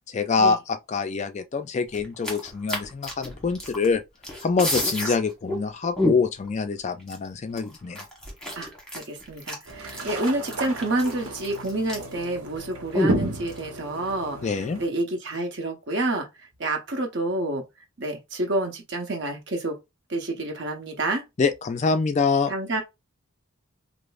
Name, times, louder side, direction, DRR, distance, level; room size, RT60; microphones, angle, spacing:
voice 1, 0.1-4.0 4.4-8.0 14.4-14.8 21.4-22.5, left 4 dB, 30° left, 0.3 m, -25 dB
sound 1, 1.9-3.9 4.2-5.2 5.5-5.6 6.0-6.5 7.1-7.2 7.6-12.2 12.5-12.6 12.9-13.6, left 1 dB, 5° left, 1.1 m, -29 dB
voice 2, 8.5-14.4 14.8-16.3 16.6-17.6 18.0-19.8 20.1-21.2 22.5-22.8, right 2 dB, 55° right, 1.0 m, -28 dB
sound 2, 9.7-14.9, right 1 dB, 80° right, 1.0 m, -33 dB
5.0 x 2.0 x 2.4 m
head